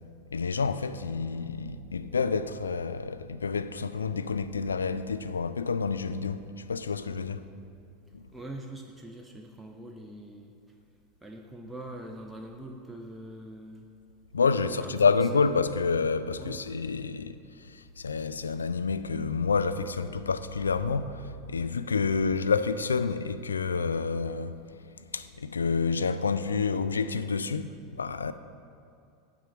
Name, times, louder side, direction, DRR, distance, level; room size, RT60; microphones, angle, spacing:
voice 1, 0.3-7.5 8.1-8.3 14.3-27.7 28.0-28.3, left 5 dB, 80° left, 0.3 m, -29 dB
voice 2, 8.3-10.5 11.2-13.9 14.5-15.7 16.4-16.6, right 1 dB, 5° right, 0.7 m, -43 dB
9.4 x 4.6 x 6.8 m
figure-of-eight pair, 85°, 0 cm